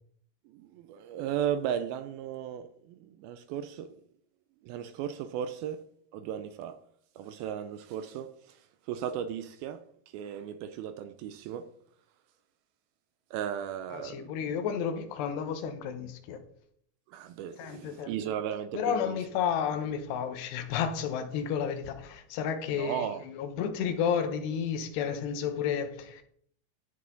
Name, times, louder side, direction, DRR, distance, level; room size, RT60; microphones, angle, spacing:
voice 1, 0.5-4.0 4.6-5.8 6.1-6.8 7.2-11.7 13.3-14.3 17.1-19.2 22.7-23.2, right 9 dB, 80° right, 2.2 m, -36 dB
voice 2, 13.9-16.4 17.6-18.2 18.7-26.2, left 7 dB, 85° left, 3.2 m, -32 dB
16.5 x 6.3 x 3.8 m
omnidirectional pair, 4.7 m